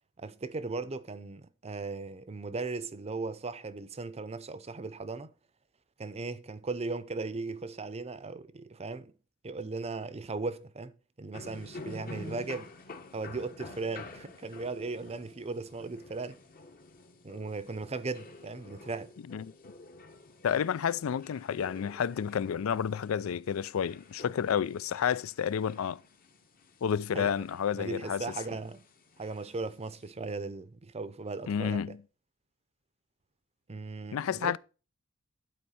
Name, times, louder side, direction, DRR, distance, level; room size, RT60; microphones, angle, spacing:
voice 1, 0.2-5.3 6.0-9.1 9.4-12.7 13.1-16.4 17.2-19.1 27.1-27.3 27.7-28.8 29.2-32.0 33.7-34.6, right 3 dB, 30° right, 0.6 m, -37 dB
sound 1, 11.3-30.1, left 2 dB, 45° left, 1.0 m, -50 dB
voice 2, 20.4-26.0 26.8-28.2 31.5-32.0 34.1-34.6, left 8 dB, 75° left, 0.4 m, -30 dB
11.0 x 4.5 x 5.7 m
head